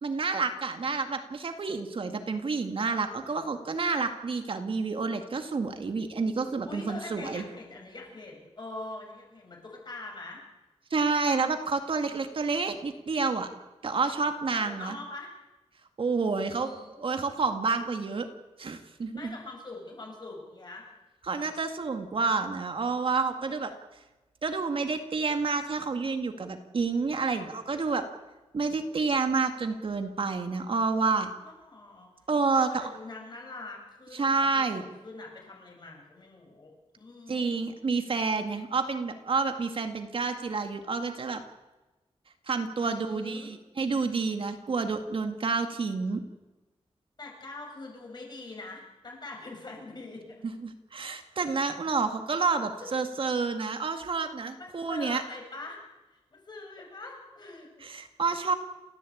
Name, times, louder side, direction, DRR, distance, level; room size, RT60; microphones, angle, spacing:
voice 1, 0.0-7.4 10.9-13.5 13.8-14.9 16.0-16.7 17.0-18.3 18.6-19.3 21.2-23.7 24.4-28.0 28.5-31.3 32.3-32.9 34.1-34.8 37.3-41.4 42.5-46.2 50.6-55.2 57.8-58.5, right 4 dB, 55° right, 6 dB, 2.0 m, -29 dB
voice 2, 6.6-10.4 14.5-15.3 16.5-17.0 19.1-20.9 31.4-32.1 32.5-37.7 42.8-43.6 47.2-50.2 52.8-52.9 54.6-55.8 56.3-57.7, left 2 dB, 40° left, 1 dB, 7.2 m, -43 dB
29.0 x 15.0 x 8.6 m, 1.1 s
wide cardioid pair, 140°, 11 cm